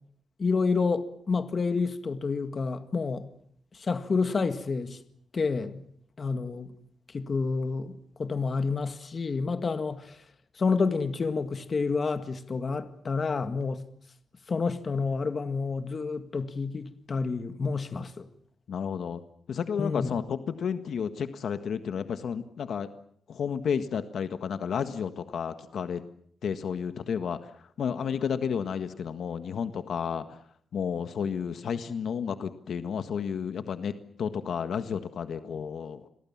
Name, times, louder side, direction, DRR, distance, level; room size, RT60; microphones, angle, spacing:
voice 1, 0.4-3.3 3.7-5.0 5.3-5.8 6.2-6.7 7.1-10.2 10.6-13.8 14.5-18.3 19.8-20.2, left 4 dB, 35° left, 1.9 m, -29 dB
voice 2, 18.7-19.2 19.5-22.9 23.3-26.0 26.4-30.4 30.7-36.0, left 7 dB, 65° left, 1.6 m, -32 dB
29.5 x 22.5 x 7.4 m
wide cardioid pair, 135°, 0 cm